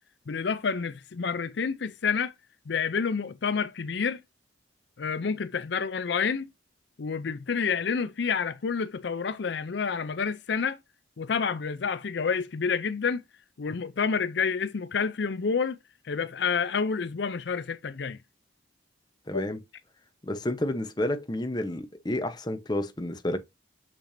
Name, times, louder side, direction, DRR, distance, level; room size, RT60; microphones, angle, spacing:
voice 1, 0.3-2.3 2.7-4.2 5.0-6.5 7.0-10.8 11.2-13.2 13.6-15.8 16.0-18.2 19.3-19.4, left 5 dB, 60° left, 0.5 m, -29 dB
voice 2, 19.3-19.6 20.2-23.4, left 1 dB, 20° left, 0.9 m, -30 dB
6.7 x 6.1 x 2.6 m
head